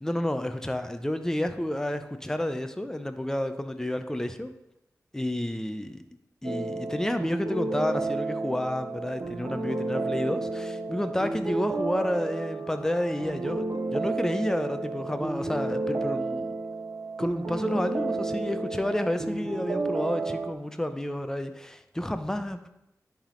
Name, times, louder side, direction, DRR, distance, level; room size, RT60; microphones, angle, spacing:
voice 1, 0.0-4.5 5.1-6.0 6.4-16.4 17.2-22.7, left 1 dB, 10° left, 8 dB, 0.5 m, -30 dB
sound 1, 6.4-20.5, right 3 dB, 55° right, 0.8 m, -32 dB
10.0 x 3.5 x 3.8 m, 0.85 s
wide cardioid pair, 80°, 6 cm